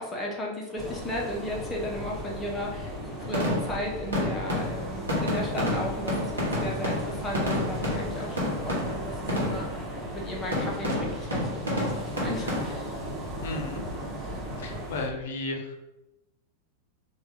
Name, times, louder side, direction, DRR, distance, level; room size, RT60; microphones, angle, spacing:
voice 1, 0.0-2.9 3.2-9.8 10.1-12.9, left 1 dB, 15° left, -3 dB, 0.8 m, -35 dB
sound 1, 0.8-15.1, equal, 20° right, 0.9 m, -37 dB
sound 2, 3.2-9.8 10.5-12.7, left 1 dB, 75° right, 1.1 m, -30 dB
voice 2, 13.4-13.9 14.6-15.8, left 2 dB, 60° left, 3 dB, 0.5 m, -34 dB
2.9 x 2.4 x 3.3 m, 0.96 s
figure-of-eight pair, 90°, 0 cm